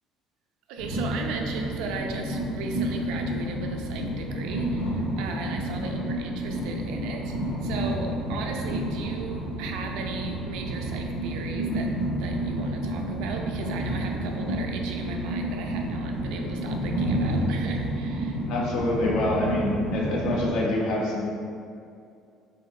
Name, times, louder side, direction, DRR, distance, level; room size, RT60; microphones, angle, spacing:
voice 1, 0.7-18.4, right 4 dB, 85° right, 2 dB, 0.4 m, -37 dB
Train, 0.8-20.5, right 1 dB, 80° left, 1.2 m, -30 dB
voice 2, 18.4-21.2, left 1 dB, 65° left, -3 dB, 0.7 m, -26 dB
3.9 x 2.5 x 2.6 m, 2.4 s
cardioid pair, 180°, 0 cm